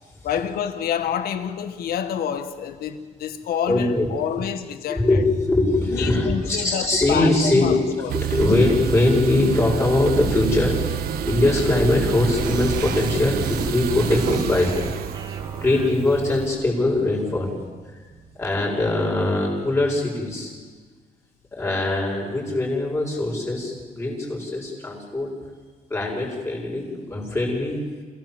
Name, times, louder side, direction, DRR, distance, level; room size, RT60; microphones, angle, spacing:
voice 1, 0.2-5.2 5.9-8.2, left 8 dB, 85° left, 1.6 m, -28 dB
voice 2, 3.7-4.1 4.9-14.9 15.6-17.5 18.4-20.5 21.6-25.3 25.9-27.8, left 2 dB, 20° left, 6.9 m, -22 dB
sound 1, 8.1-16.5, right 9 dB, 80° right, 1.5 m, -28 dB
sound 2, 12.2-18.6, right 4 dB, 25° right, 2.0 m, -36 dB
29.0 x 17.5 x 7.7 m
cardioid pair, 160°, 15 cm